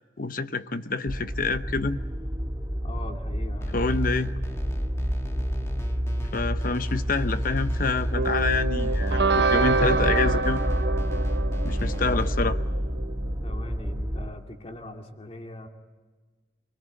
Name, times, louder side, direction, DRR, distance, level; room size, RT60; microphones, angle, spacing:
voice 1, 0.2-2.0 3.7-4.3 6.3-10.7 11.6-12.6, left 3 dB, 50° left, 11 dB, 0.9 m, -27 dB
sound 1, 1.1-14.3, equal, 20° right, 1.3 m, -28 dB
voice 2, 2.8-3.7 11.9-12.6 13.4-15.7, left 1 dB, 35° left, 3 dB, 2.5 m, -42 dB
sound 2, 3.6-12.3, equal, 15° left, 1.9 m, -41 dB
sound 3, 8.1-13.1, right 4 dB, 70° right, 0.8 m, -27 dB
27.5 x 21.5 x 9.1 m, 1.3 s
head